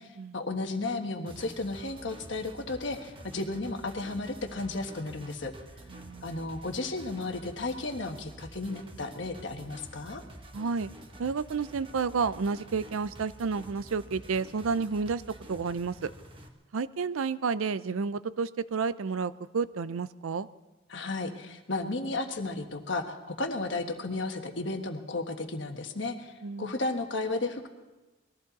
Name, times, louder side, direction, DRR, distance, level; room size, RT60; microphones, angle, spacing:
voice 1, 0.3-5.5 6.2-10.2 20.9-26.3 26.6-27.7, left 2 dB, 60° left, 5 dB, 1.3 m, -33 dB
sound 1, 1.3-16.5, right 1 dB, 25° right, 1.2 m, -48 dB
voice 2, 5.9-6.3 10.5-10.9 11.2-15.2 15.5-16.1 16.7-20.5 26.4-26.7, right 5 dB, 80° right, 16 dB, 0.5 m, -31 dB
21.0 x 14.5 x 4.1 m, 1.1 s
head